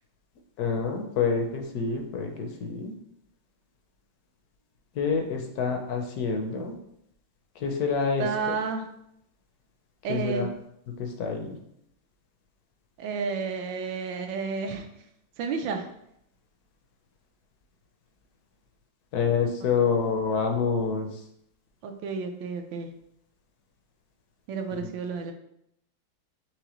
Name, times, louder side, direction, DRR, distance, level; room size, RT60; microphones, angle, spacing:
voice 1, 0.6-2.9 4.9-6.7 7.6-8.5 10.1-10.5 11.0-11.6 19.1-21.1 24.8-24.9, left 5 dB, 70° left, 4 dB, 0.9 m, -27 dB
voice 2, 8.2-8.8 10.0-10.5 13.0-14.9 15.4-15.9 21.8-22.9 24.5-25.3, right 5 dB, 75° right, 5 dB, 1.2 m, -31 dB
4.8 x 3.3 x 3.0 m, 0.75 s
omnidirectional pair, 2.1 m